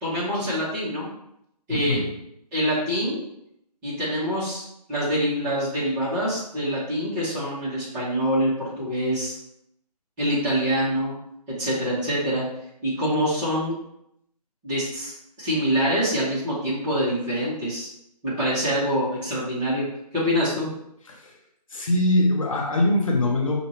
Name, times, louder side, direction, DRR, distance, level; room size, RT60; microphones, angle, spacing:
voice 1, 0.0-1.1 1.7-2.0 2.5-3.2 3.8-4.6 4.9-9.3 10.2-11.1 11.5-12.4 12.8-13.7 14.6-15.1 15.4-17.9 18.2-19.9 20.1-20.7, equal, 15° right, -9 dB, 1.4 m, -25 dB
voice 2, 1.7-2.1 21.1-21.3 21.7-23.6, left 1 dB, 50° left, -1 dB, 0.9 m, -22 dB
5.8 x 2.7 x 3.2 m, 0.77 s
figure-of-eight pair, 145°, 21 cm